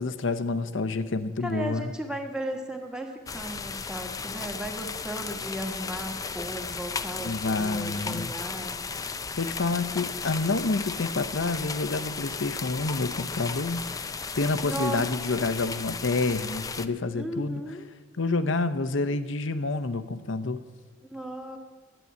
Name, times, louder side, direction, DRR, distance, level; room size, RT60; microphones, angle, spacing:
voice 1, 0.0-1.9 7.2-8.3 9.3-13.9 14.4-17.8 18.2-20.6, left 3 dB, 70° left, 12 dB, 0.7 m, -28 dB
voice 2, 1.4-8.8 14.6-15.1 17.1-17.8 21.1-21.6, right 1 dB, 5° right, 2 dB, 1.4 m, -35 dB
sound 1, 3.3-16.9, left 5 dB, 15° left, 0.4 m, -35 dB
11.0 x 9.2 x 8.3 m, 1.5 s
head